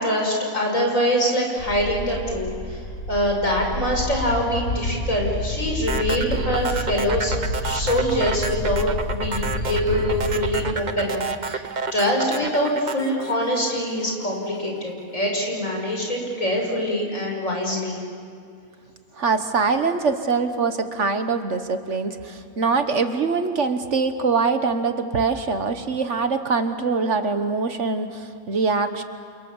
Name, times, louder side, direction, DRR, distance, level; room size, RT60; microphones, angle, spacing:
voice 1, 0.0-2.8 3.1-11.6 11.9-18.0, equal, 65° left, 0 dB, 6.0 m, -24 dB
sound 1, 1.6-10.7, left 1 dB, 90° left, 3.1 m, -29 dB
sound 2, 5.9-14.2, right 4 dB, 35° right, 0.9 m, -30 dB
voice 2, 19.2-29.0, right 4 dB, 55° right, 8 dB, 1.5 m, -23 dB
29.0 x 28.5 x 7.2 m, 2.3 s
omnidirectional pair, 1.5 m